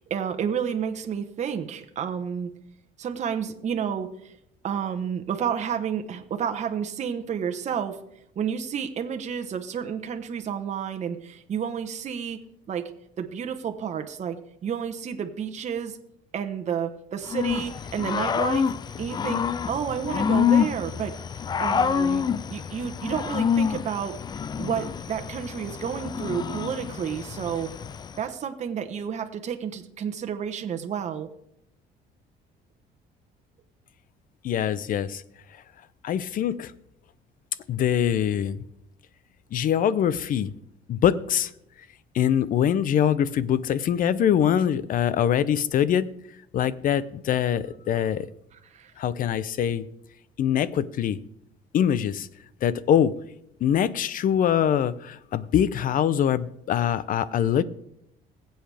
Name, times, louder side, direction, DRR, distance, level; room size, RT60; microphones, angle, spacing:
voice 1, 0.1-2.5 3.0-4.3 4.6-8.0 8.3-12.4 12.7-12.9 13.2-16.0 16.3-18.7 19.0-21.2 21.6-24.2 24.6-27.7 28.2-31.3 48.5-48.9, right 8 dB, 45° right, 6 dB, 1.1 m, -30 dB
Growling / Cricket, 17.3-28.2, left 7 dB, 25° left, 0.3 m, -27 dB
voice 2, 34.4-35.2 36.0-36.7 37.7-38.6 39.5-40.5 40.9-41.5 42.1-46.1 46.5-48.3 49.0-49.9 50.4-51.2 51.7-52.3 52.6-53.1 53.6-57.6, left 9 dB, 55° left, 18 dB, 0.7 m, -23 dB
20.5 x 7.9 x 3.4 m, 0.75 s
cardioid pair, 110°, 17 cm